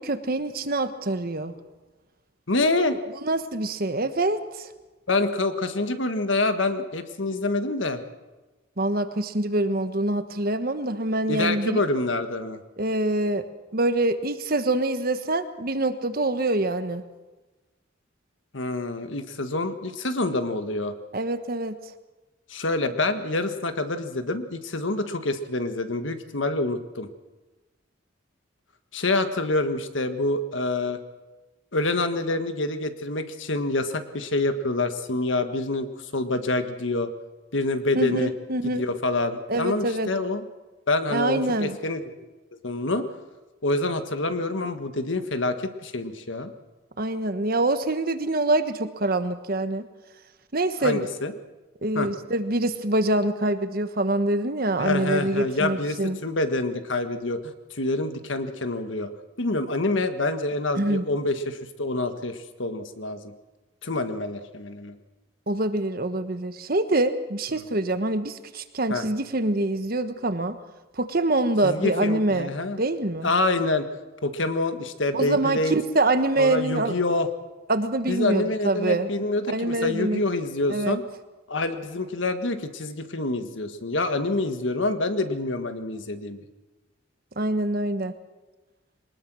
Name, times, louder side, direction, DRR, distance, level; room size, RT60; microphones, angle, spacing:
voice 1, 0.0-1.5 3.2-4.7 8.8-11.8 12.8-13.4 13.7-17.0 21.1-21.7 37.9-38.8 39.5-40.1 41.1-41.8 47.0-49.8 50.5-51.1 51.8-56.2 60.7-61.1 65.5-70.5 71.0-72.5 72.8-73.3 75.1-76.9 77.7-79.1 79.5-80.2 80.7-81.0 87.4-88.2, right 2 dB, 50° right, 10 dB, 1.3 m, -25 dB
voice 2, 2.5-3.0 5.1-8.0 11.3-12.6 18.5-20.9 22.5-27.1 28.9-31.0 31.7-35.9 36.1-37.1 37.5-38.3 38.6-40.4 40.9-42.1 42.6-43.1 43.6-46.5 50.8-51.3 51.9-52.1 54.8-59.1 59.4-63.3 63.8-65.0 68.9-69.0 71.6-72.8 73.2-73.9 74.2-75.8 76.4-77.3 78.1-81.0 81.5-86.4, left 2 dB, 75° left, 9 dB, 1.6 m, -26 dB
22.5 x 20.0 x 6.2 m, 1.2 s
head